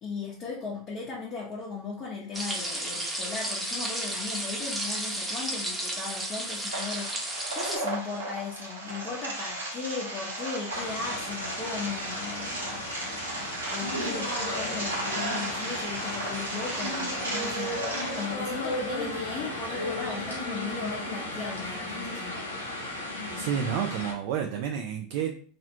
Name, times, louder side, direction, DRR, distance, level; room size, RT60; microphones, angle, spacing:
voice 1, 0.0-7.3 7.6-12.6 13.7-22.4, left 4 dB, 35° left, -4 dB, 0.7 m, -37 dB
sound 1, 2.3-7.8, right 1 dB, 10° right, 0.7 m, -33 dB
sound 2, 6.7-18.3, right 1 dB, 85° right, 0.8 m, -35 dB
sound 3, 10.7-24.1, left 1 dB, 90° left, 0.6 m, -35 dB
voice 2, 23.4-25.3, right 8 dB, 60° right, 2 dB, 0.3 m, -30 dB
2.4 x 2.0 x 2.8 m, 0.44 s
figure-of-eight pair, 80°, 0 cm